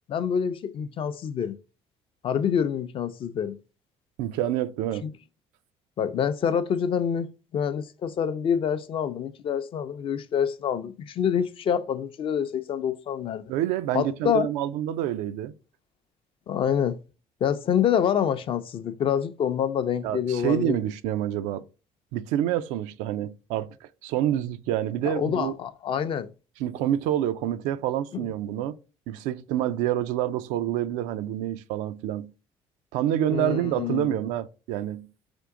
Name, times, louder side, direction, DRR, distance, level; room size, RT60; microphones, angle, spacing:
voice 1, 0.1-1.6 2.2-3.6 5.0-5.1 6.0-7.3 7.5-13.5 13.9-14.5 16.5-17.0 17.4-20.8 25.0-26.3 33.3-34.2, left 8 dB, 45° left, 0.5 m, -26 dB
voice 2, 4.2-5.1 13.5-15.5 20.0-21.6 22.1-25.5 26.6-28.8 29.1-32.3 32.9-35.1, right 11 dB, 85° right, 0.4 m, -27 dB
3.6 x 2.9 x 3.6 m
supercardioid pair, 90°, 12 cm